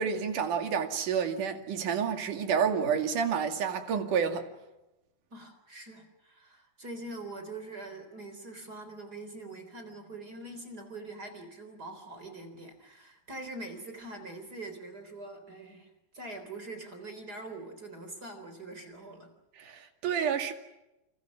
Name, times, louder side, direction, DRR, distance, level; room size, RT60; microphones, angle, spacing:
voice 1, 0.0-4.5 19.6-20.5, right 7 dB, 55° right, 3.4 m, -29 dB
voice 2, 5.3-19.3, right 2 dB, 25° right, 3.7 m, -43 dB
29.0 x 28.0 x 6.2 m
omnidirectional pair, 5.0 m